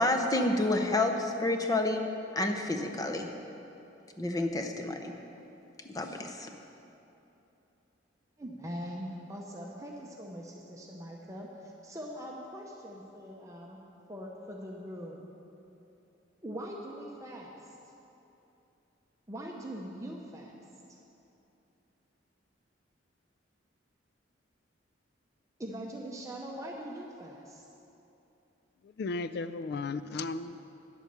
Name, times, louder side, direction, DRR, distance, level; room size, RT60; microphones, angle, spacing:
voice 1, 0.0-2.0 2.4-3.3 4.2-5.1 5.8-6.5, left 2 dB, 20° left, 4 dB, 0.7 m, -29 dB
voice 2, 8.4-13.8 14.1-15.3 16.4-17.8 19.3-20.5 20.9-21.0 25.6-27.6, equal, 15° right, -1 dB, 0.7 m, -42 dB
voice 3, 29.0-30.6, left 3 dB, 60° left, 13 dB, 0.3 m, -35 dB
10.0 x 8.1 x 6.7 m, 2.9 s
head